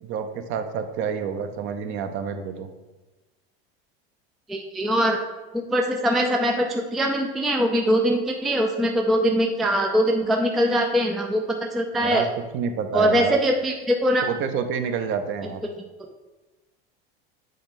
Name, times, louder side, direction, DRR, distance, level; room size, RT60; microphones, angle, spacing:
voice 1, 0.0-2.7 12.0-13.4 14.2-15.6, right 7 dB, 45° right, 8 dB, 0.7 m, -28 dB
voice 2, 4.5-5.2 5.5-12.3 12.9-14.2, equal, ahead, 2 dB, 0.3 m, -22 dB
7.7 x 4.1 x 3.7 m, 1.1 s
supercardioid pair, 130°, 30 cm